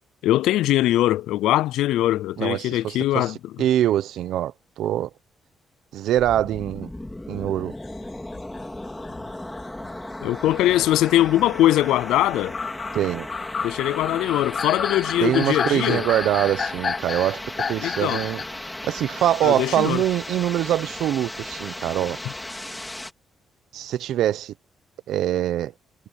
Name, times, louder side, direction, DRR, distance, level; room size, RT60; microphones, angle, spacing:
voice 1, 0.2-3.5 10.2-12.6 13.6-16.1 17.8-18.2 19.4-20.0 22.2-22.3, left 14 dB, 90° left, 0.4 m, -21 dB
voice 2, 2.4-3.3 3.6-5.1 5.9-6.9 7.3-7.7 12.9-13.3 15.2-17.4 17.7-18.4 18.8-22.2 23.7-24.5 25.1-25.7, right 12 dB, 80° right, 0.9 m, -23 dB
sound 1, 6.2-23.1, left 1 dB, 10° left, 4.4 m, -36 dB
sound 2, 7.7-10.0 10.6-11.7 12.4-18.6, left 5 dB, 45° left, 2.0 m, -31 dB
cardioid pair, 90°, 0 cm